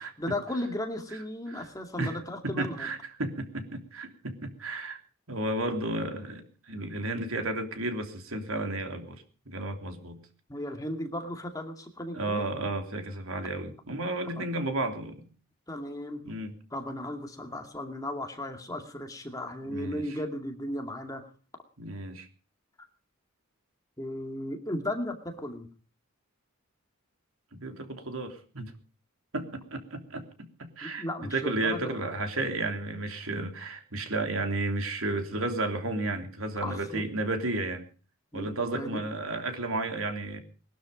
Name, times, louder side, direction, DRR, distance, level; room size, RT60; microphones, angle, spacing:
voice 1, 0.0-2.9 10.5-12.4 14.4-14.5 15.7-16.2 16.7-21.3 24.0-25.7 30.8-32.1 36.6-37.1 38.3-39.0, left 1 dB, 15° left, 4 dB, 2.3 m, -36 dB
voice 2, 2.4-5.0 5.3-10.2 12.1-15.3 16.2-16.5 19.6-20.2 21.8-22.3 27.5-28.7 29.3-31.0 31.3-37.8 38.3-40.4, right 2 dB, 75° right, 5 dB, 3.2 m, -33 dB
21.0 x 12.5 x 5.2 m, 0.39 s
head